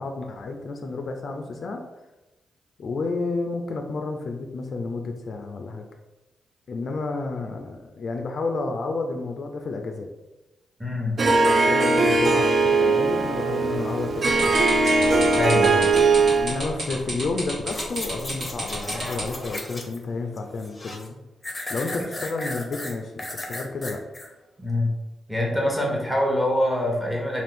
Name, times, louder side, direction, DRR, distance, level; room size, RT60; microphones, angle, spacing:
voice 1, 0.0-1.8 2.8-5.8 6.7-10.1 11.4-14.7 16.4-21.2 21.7-24.0, left 3 dB, 60° left, 4 dB, 0.4 m, -31 dB
voice 2, 10.8-11.2 15.3-15.9 24.6-25.0 25.3-27.4, left 1 dB, 5° right, -2 dB, 1.0 m, -24 dB
Harp, 11.2-16.6, right 3 dB, 50° right, 0.4 m, -20 dB
sound 1, 14.2-19.4, right 1 dB, 65° right, 1.4 m, -31 dB
sound 2, 17.7-20.0 20.4-21.1 21.4-24.3 24.7-24.8, left 1 dB, 25° left, 0.7 m, -35 dB
2.5 x 2.5 x 3.5 m, 1.0 s
cardioid pair, 65°, 0 cm